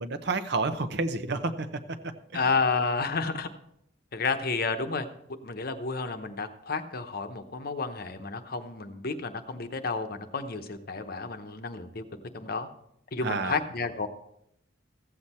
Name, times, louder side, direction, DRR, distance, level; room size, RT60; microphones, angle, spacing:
voice 1, 0.0-2.4 13.2-13.6, right 3 dB, 60° right, 9 dB, 0.9 m, -30 dB
voice 2, 2.3-3.5 4.1-5.1 5.4-12.0 12.3-12.7 13.1-14.1, left 4 dB, 55° left, 8 dB, 0.9 m, -31 dB
14.5 x 8.1 x 4.3 m, 0.76 s
head